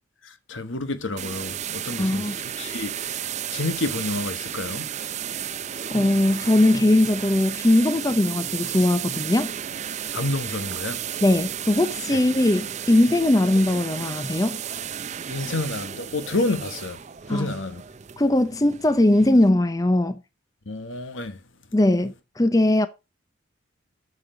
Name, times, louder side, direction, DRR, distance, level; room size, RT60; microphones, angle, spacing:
voice 1, 0.5-2.3 2.6-2.9 3.5-4.9 10.1-11.0 15.3-17.0 17.3-17.8 20.7-21.4, left 2 dB, 75° left, 1.3 m, -29 dB
sound 1, 1.2-19.5, right 9 dB, 35° right, 0.5 m, -33 dB
voice 2, 2.0-2.4 5.9-9.5 11.2-14.6 17.3-17.5 18.2-20.2 21.7-22.9, left 1 dB, 15° left, 0.5 m, -20 dB
9.8 x 6.8 x 3.9 m
head